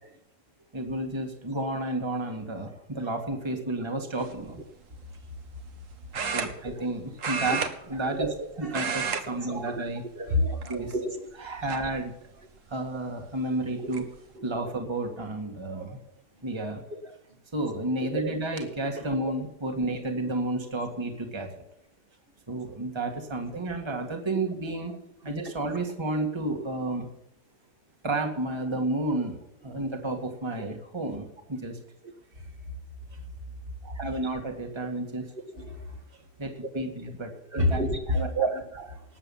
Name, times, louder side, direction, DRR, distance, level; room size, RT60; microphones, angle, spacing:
voice 1, 0.7-4.6 6.3-7.6 7.9-8.3 8.6-10.0 10.7-10.9 11.4-12.1 12.7-14.1 14.4-16.0 16.4-16.8 17.5-21.5 22.5-24.9 25.2-27.1 28.0-29.4 29.6-31.8 33.8-35.3 36.4-37.8 38.1-38.5, right 2 dB, 15° right, 1.9 m, -31 dB
sound 1, 4.2-4.5 6.1-6.9 7.2-8.4 8.7-9.2 9.5-9.8 10.6-11.1 11.7-11.8 13.2-13.3 13.6-14.0, right 5 dB, 50° right, 1.7 m, -31 dB
voice 2, 8.0-8.8 9.3-9.8 10.2-11.3 13.8-13.9 14.4-14.5 16.9-17.2 18.0-18.3 25.5-25.6 32.0-32.1 35.5-35.9 36.7-36.9 37.5-39.0, equal, 35° right, 1.8 m, -30 dB
19.5 x 8.1 x 5.6 m
omnidirectional pair, 1.8 m